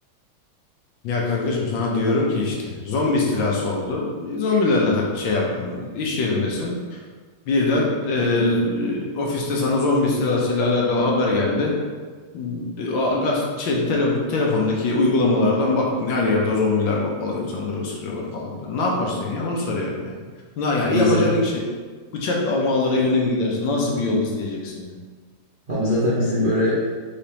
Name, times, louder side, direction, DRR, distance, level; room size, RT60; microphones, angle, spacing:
voice 1, 1.0-7.0 7.5-11.8 12.3-20.2 20.6-21.6 22.1-24.9, left 2 dB, 70° left, -2 dB, 1.4 m, -22 dB
voice 2, 20.9-21.3 25.7-26.9, left 1 dB, 40° right, -11 dB, 0.7 m, -21 dB
4.9 x 3.4 x 2.8 m, 1.5 s
omnidirectional pair, 2.3 m